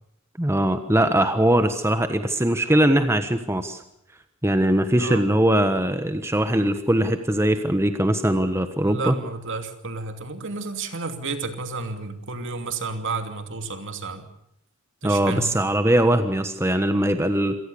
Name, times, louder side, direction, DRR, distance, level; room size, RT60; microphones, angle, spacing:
voice 1, 0.4-3.8 4.4-9.1 15.0-17.6, right 1 dB, 10° right, 8 dB, 1.3 m, -21 dB
voice 2, 8.8-14.3 15.0-15.6, right 3 dB, 60° right, 7 dB, 2.7 m, -31 dB
26.5 x 18.5 x 6.9 m, 0.76 s
head